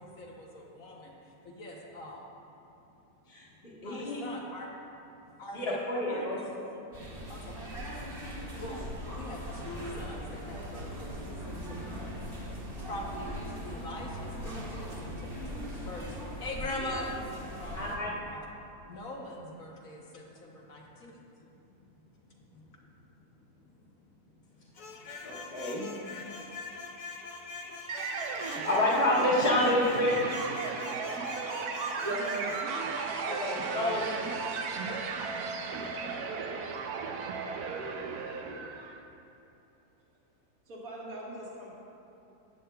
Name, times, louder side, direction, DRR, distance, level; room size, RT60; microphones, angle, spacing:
voice 1, 0.0-2.3 2.7-2.8 3.4-4.7 5.3-5.8 6.1-7.7 8.6-17.9 18.2-18.6 18.8-25.3 26.2-26.4 26.6-26.7, left 1 dB, 60° left, -2 dB, 1.3 m, -44 dB
voice 2, 3.8-4.2 5.5-6.4 17.7-18.1 25.2-25.9 28.3-30.4 33.2-34.1, left 1 dB, 35° left, -9 dB, 1.6 m, -28 dB
sound 1, 6.9-18.0, equal, 35° right, 1.5 m, -40 dB
sound 2, 24.7-32.7, left 4 dB, 85° left, 0.4 m, -44 dB
sound 3, 27.9-39.0, right 4 dB, 75° right, 1.2 m, -35 dB
voice 3, 32.0-32.9 33.3-33.5 35.8-35.9 40.7-41.7, right 1 dB, 60° right, -5 dB, 2.1 m, -38 dB
14.5 x 8.5 x 2.3 m, 2.9 s
omnidirectional pair, 1.7 m